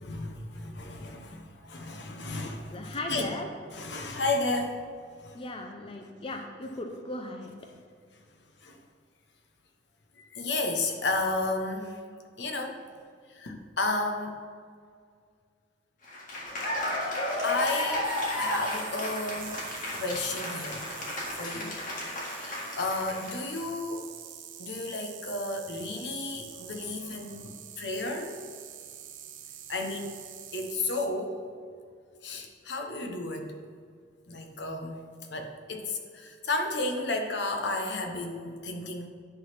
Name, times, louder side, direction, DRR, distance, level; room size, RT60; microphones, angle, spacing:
voice 1, 0.0-3.3 3.7-4.8 5.2-5.4 8.6-8.8 10.2-12.0 12.4-12.8 13.3-14.4 17.4-20.9 21.4-21.8 22.3-24.1 24.6-28.4 29.7-30.2 30.5-31.4 32.2-33.5 34.3-35.0 35.3-39.1, left 2 dB, 65° left, 4 dB, 1.1 m, -33 dB
voice 2, 2.7-3.5 5.3-7.5, left 1 dB, 30° left, 3 dB, 0.5 m, -37 dB
Cheering / Applause, 16.0-23.6, left 1 dB, 45° left, 1.9 m, -33 dB
sound 1, 18.0-31.1, right 9 dB, 90° right, 0.8 m, -46 dB
11.0 x 4.0 x 5.8 m, 2.1 s
head